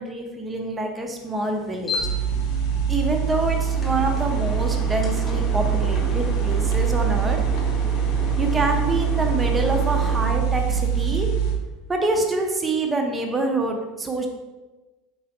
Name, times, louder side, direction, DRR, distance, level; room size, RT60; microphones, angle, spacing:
voice 1, 0.0-1.9 2.9-7.7 8.4-11.3 11.9-14.3, right 2 dB, 15° right, 3 dB, 0.5 m, -26 dB
sound 1, 1.2-10.3, left 2 dB, 15° left, 0.9 m, -35 dB
sound 2, 2.0-11.5, right 7 dB, 80° left, 0.6 m, -23 dB
4.1 x 3.0 x 2.9 m, 1.2 s
supercardioid pair, 115°, 0 cm